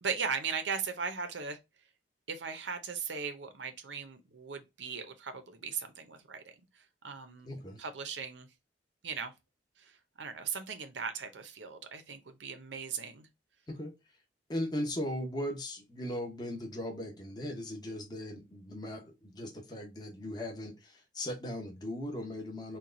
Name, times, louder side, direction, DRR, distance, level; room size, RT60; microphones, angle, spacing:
voice 1, 0.0-1.6 2.3-7.5 7.8-8.5 9.0-9.3 9.8-13.3, right 6 dB, 80° right, 0.8 m, -38 dB
voice 2, 7.4-7.8 13.7-13.9 14.5-22.8, left 1 dB, 25° left, 1.0 m, -38 dB
4.5 x 2.3 x 3.8 m
head